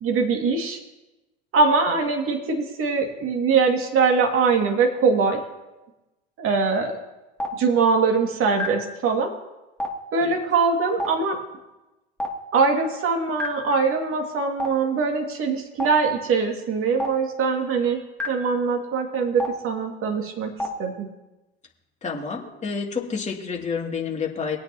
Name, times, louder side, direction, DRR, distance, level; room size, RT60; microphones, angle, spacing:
voice 1, 0.0-0.8 1.5-5.4 6.4-7.0 7.6-9.3 10.1-11.4 12.5-18.0 18.3-20.5 20.8-21.1, right 4 dB, 40° right, 2 dB, 2.4 m, -22 dB
Stream, 7.4-7.5 8.6-8.7 9.8-9.9 11.0-11.1 12.2-12.3 13.4-13.5 14.6-14.7 15.8-15.9 17.0-17.1 18.2-18.3 19.4-19.5 20.6-20.7, left 1 dB, 5° left, 2.7 m, -27 dB
voice 2, 22.0-24.6, left 5 dB, 20° left, -1 dB, 2.7 m, -29 dB
23.0 x 8.5 x 3.0 m, 1.0 s
hypercardioid pair, 75°, 33 cm